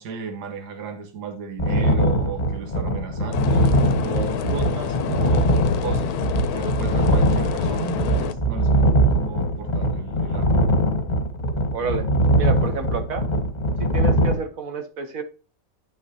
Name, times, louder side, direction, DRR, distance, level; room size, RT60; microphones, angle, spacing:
voice 1, 0.0-6.1 6.5-10.6 12.6-12.8, right 5 dB, 75° right, 1.7 m, -34 dB
sound 1, 1.6-14.3, right 1 dB, 30° left, 1.0 m, -21 dB
sound 2, 3.3-8.3, left 9 dB, 70° left, 1.1 m, -28 dB
voice 2, 11.7-12.1 12.4-13.3 13.8-15.2, right 5 dB, 55° right, 1.3 m, -29 dB
9.7 x 5.7 x 2.8 m
omnidirectional pair, 1.8 m